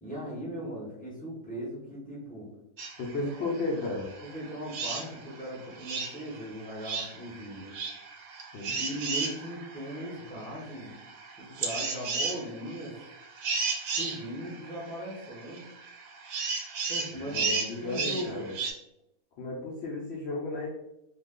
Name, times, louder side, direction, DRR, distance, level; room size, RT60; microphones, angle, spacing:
voice 1, 0.0-2.5 3.2-3.5 4.2-7.7 8.7-10.9 11.4-12.9 14.0-15.7 16.9-18.5, equal, 10° left, -5 dB, 0.4 m, -39 dB
sound 1, 2.8-18.7, right 4 dB, 70° right, 0.9 m, -35 dB
voice 2, 3.0-4.1 8.5-8.8 17.1-18.5 19.4-20.7, left 3 dB, 70° left, -2 dB, 0.6 m, -34 dB
2.5 x 2.3 x 3.5 m, 0.85 s
omnidirectional pair, 1.7 m